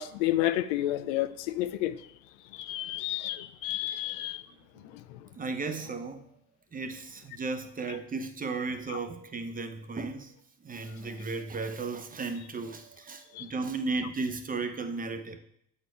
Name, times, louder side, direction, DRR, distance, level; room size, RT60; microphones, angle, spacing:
voice 1, 0.0-2.0 2.5-4.4 4.9-5.0 8.9-9.0 13.3-13.5, left 14 dB, 85° left, 0.5 m, -30 dB
voice 2, 3.9-4.2 4.7-4.9 5.3-6.3 6.7-10.3 10.6-15.4, right 3 dB, 25° right, 0.8 m, -35 dB
7.8 x 4.4 x 4.7 m
supercardioid pair, 85°, 35 cm